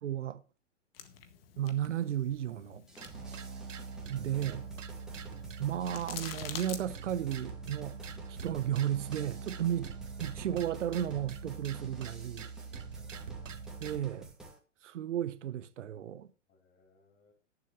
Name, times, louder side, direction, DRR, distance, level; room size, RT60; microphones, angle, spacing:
voice 1, 0.0-0.4 1.6-2.9 4.1-4.6 5.6-8.0 8.3-9.9 10.2-12.5 13.8-14.3 14.8-16.3, right 11 dB, 70° right, 1.0 m, -34 dB
sound 1, 0.9-6.8, left 8 dB, 50° left, 1.7 m, -48 dB
sound 2, 2.9-14.6, right 2 dB, ahead, 2.2 m, -52 dB
sound 3, 3.0-14.0, right 5 dB, 90° right, 1.5 m, -44 dB
voice 2, 3.2-3.8 9.8-9.9 12.6-13.3 16.5-17.3, left 3 dB, 30° left, 6.5 m, -67 dB
18.0 x 7.4 x 3.1 m
hypercardioid pair, 145°, 37 cm